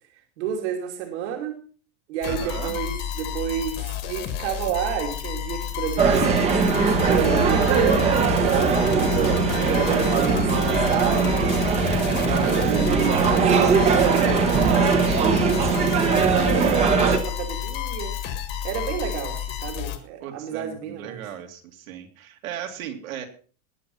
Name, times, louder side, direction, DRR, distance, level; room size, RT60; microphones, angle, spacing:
voice 1, 0.4-1.6 2.1-6.6 7.0-8.1 8.5-11.5 12.5-15.6 16.1-18.1 18.6-21.2, right 9 dB, 50° right, 2 dB, 2.7 m, -30 dB
sound 1, 2.2-20.0, left 9 dB, 25° left, 1.7 m, -31 dB
voice 2, 2.3-2.8 13.1-13.6 20.2-23.3, right 9 dB, 70° right, 3 dB, 3.1 m, -37 dB
sound 2, 6.0-17.2, right 5 dB, 15° right, 1.2 m, -20 dB
20.0 x 7.5 x 5.5 m, 0.40 s
supercardioid pair, 180°, 43 cm